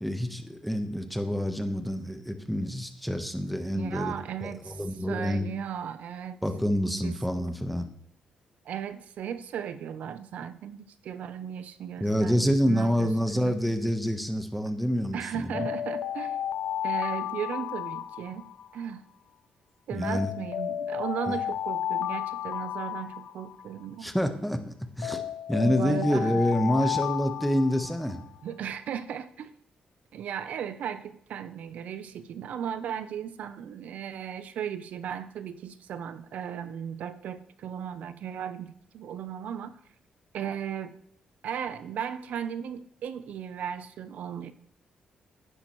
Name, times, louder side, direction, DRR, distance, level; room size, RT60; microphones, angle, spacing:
voice 1, 0.0-4.1 4.4-5.5 6.4-7.9 12.0-15.7 19.9-20.3 21.3-21.4 24.0-24.6 25.0-25.2 25.5-28.2, equal, ahead, 6 dB, 1.1 m, -27 dB
voice 2, 3.7-4.8 5.1-6.4 7.0-7.2 8.7-13.6 15.1-16.4 16.8-18.5 18.7-19.1 19.9-24.1 25.6-26.5 26.8-27.0 28.4-29.5 30.1-39.8 40.3-40.9 41.4-44.5, right 8 dB, 75° right, 13 dB, 0.7 m, -36 dB
Alarm, 15.5-18.8 20.0-23.8 25.0-28.3, left 10 dB, 70° left, 0.5 m, -33 dB
11.0 x 9.9 x 3.2 m, 0.69 s
cardioid pair, 100°, 3 cm